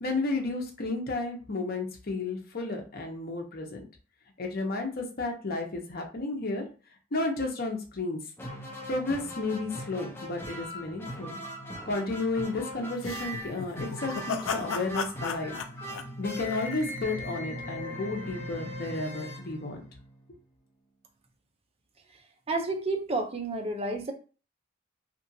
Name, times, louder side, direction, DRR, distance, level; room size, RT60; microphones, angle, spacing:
voice 1, 0.0-3.8 4.4-6.6 7.1-8.2 8.9-11.4 11.8-15.5 16.2-19.8, left 2 dB, 50° left, 2 dB, 0.7 m, -32 dB
sound 1, 8.4-20.2, equal, 10° left, 0.8 m, -40 dB
sound 2, 13.0-17.1, left 6 dB, 70° left, 0.4 m, -35 dB
voice 2, 22.5-24.1, right 2 dB, 30° right, 4 dB, 0.6 m, -30 dB
2.9 x 2.4 x 2.7 m, 0.35 s
head